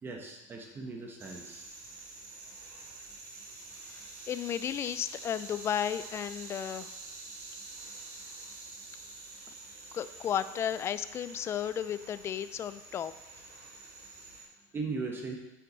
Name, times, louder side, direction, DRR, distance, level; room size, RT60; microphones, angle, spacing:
voice 1, 0.0-1.7 14.7-15.4, right 4 dB, 25° right, 2 dB, 1.1 m, -38 dB
sound 1, 1.2-14.4, right 3 dB, 80° right, 2.2 m, -47 dB
voice 2, 3.9-6.9 9.9-13.1, left 9 dB, 30° left, 14 dB, 0.3 m, -34 dB
8.1 x 5.9 x 4.0 m, 1.0 s
supercardioid pair, 125°, 9 cm